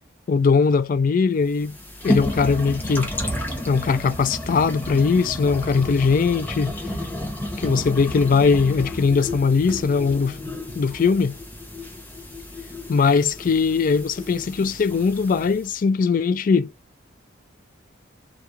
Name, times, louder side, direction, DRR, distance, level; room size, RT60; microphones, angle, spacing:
voice 1, 0.3-1.8 2.0-3.1 3.7-6.7 7.6-10.4 10.8-11.4 12.9-16.7, left 5 dB, 40° left, 0.3 m, -20 dB
sound 1, 1.4-15.7, left 1 dB, 10° left, 0.8 m, -32 dB
2.9 x 2.4 x 3.6 m
head